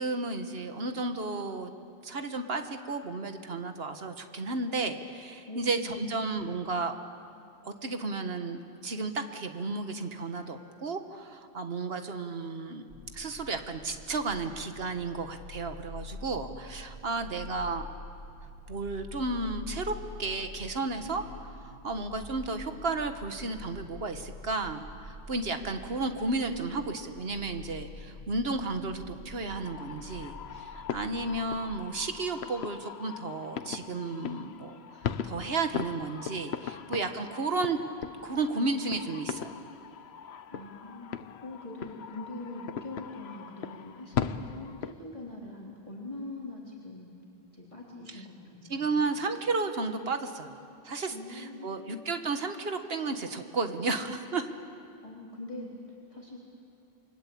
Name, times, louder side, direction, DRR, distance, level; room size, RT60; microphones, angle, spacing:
voice 1, 0.0-1.7 2.0-6.9 7.6-12.8 13.1-17.9 18.7-19.9 20.2-21.2 21.6-34.8 35.2-37.8 38.2-39.5 48.1-48.2 48.7-50.5 50.8-54.5, right 3 dB, 70° right, 7 dB, 1.7 m, -33 dB
voice 2, 5.5-6.2 40.5-47.1 47.5-49.0 51.1-51.9 55.0-56.4, left 2 dB, 30° left, -3 dB, 3.5 m, -43 dB
sound 1, 12.9-31.6, left 3 dB, 55° right, 7.4 m, -46 dB
sound 2, 29.5-44.9, left 8 dB, 85° left, 1.1 m, -39 dB
29.0 x 23.5 x 8.6 m, 2.6 s
omnidirectional pair, 1.0 m